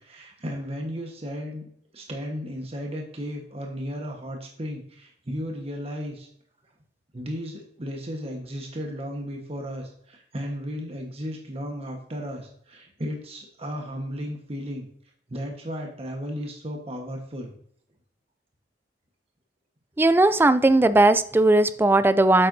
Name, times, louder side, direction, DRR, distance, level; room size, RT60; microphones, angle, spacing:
voice 1, 0.0-6.3 7.1-14.8 15.3-17.5, equal, 35° right, 1.2 m, -34 dB
voice 2, 20.0-22.5, right 2 dB, 10° right, 0.3 m, -18 dB
8.6 x 7.6 x 2.7 m
head